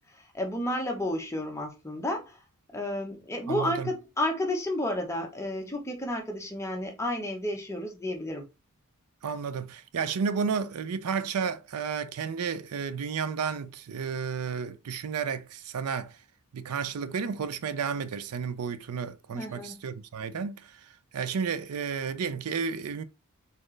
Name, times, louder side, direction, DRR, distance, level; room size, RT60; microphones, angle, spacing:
voice 1, 0.2-2.4 2.7-8.4 19.3-19.7, left 1 dB, 15° left, 0.9 m, -31 dB
voice 2, 3.5-3.9 9.2-16.2 16.5-20.8 21.1-23.0, right 6 dB, 85° right, 0.5 m, -32 dB
4.3 x 3.6 x 3.2 m
head